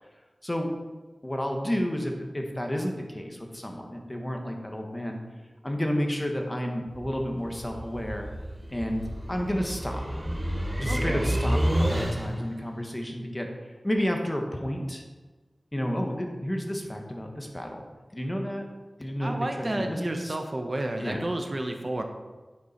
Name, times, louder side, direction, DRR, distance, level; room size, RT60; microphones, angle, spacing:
voice 1, 1.2-5.2 5.6-8.3 8.7-9.0 9.3-10.0 10.8-15.0 15.7-17.8 18.1-18.6 19.0-20.4 21.0-21.3, equal, 20° left, 2 dB, 1.6 m, -31 dB
sound 1, 6.9-12.5, equal, 20° right, 3.0 m, -29 dB
voice 2, 10.8-11.4 19.2-22.0, right 1 dB, 45° right, 4 dB, 0.9 m, -31 dB
9.3 x 6.9 x 4.5 m, 1.3 s
wide cardioid pair, 60°, 0 cm